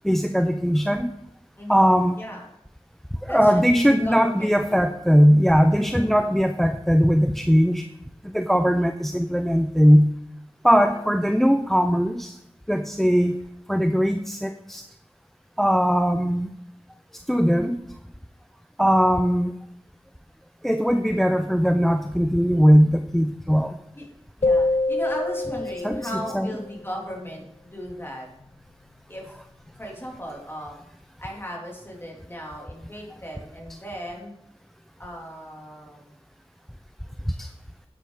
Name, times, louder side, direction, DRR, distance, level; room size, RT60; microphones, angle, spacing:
voice 1, 0.0-1.1 1.7-2.2 3.2-7.8 8.2-10.1 10.6-12.3 12.7-13.4 13.7-14.8 15.6-16.5 17.3-17.9 18.8-19.6 20.6-23.8 25.8-26.5 37.3-37.5, equal, ahead, 8 dB, 0.6 m, -20 dB
voice 2, 1.6-2.4 3.3-3.6 3.9-4.8 5.7-6.3 10.8-11.0 23.9-24.1 24.4-28.3 29.1-29.3 29.8-30.8 31.2-34.3 35.0-36.1, equal, 20° left, -2 dB, 3.2 m, -36 dB
sound 1, 24.4-26.7, left 2 dB, 60° left, 0.7 m, -25 dB
9.9 x 8.9 x 4.0 m, 0.79 s
wide cardioid pair, 60°, 11 cm